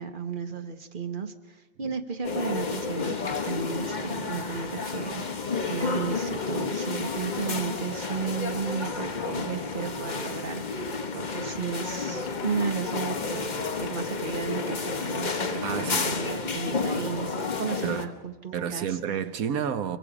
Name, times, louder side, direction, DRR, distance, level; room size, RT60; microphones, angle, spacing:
voice 1, 0.0-5.2 5.7-18.9, right 6 dB, 40° right, 1.2 m, -34 dB
sound 1, 2.2-18.1, left 4 dB, 35° left, 1.2 m, -31 dB
sound 2, 8.5-16.3, left 7 dB, 80° left, 1.4 m, -43 dB
voice 2, 15.6-16.2 17.8-18.1 18.5-20.0, right 8 dB, 80° right, 1.4 m, -30 dB
23.5 x 23.0 x 5.0 m
omnidirectional pair, 1.5 m